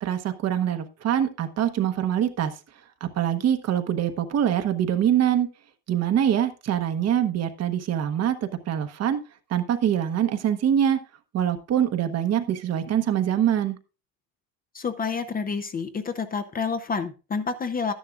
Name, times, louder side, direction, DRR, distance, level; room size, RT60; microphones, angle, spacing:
voice 1, 0.0-2.5 3.2-5.5 5.9-9.2 9.5-11.0 11.3-13.8, right 10 dB, 45° right, 9 dB, 1.0 m, -24 dB
voice 2, 14.7-17.9, left 5 dB, 25° left, 10 dB, 0.6 m, -29 dB
11.5 x 10.5 x 2.4 m, 0.31 s
cardioid pair, 120°, 37 cm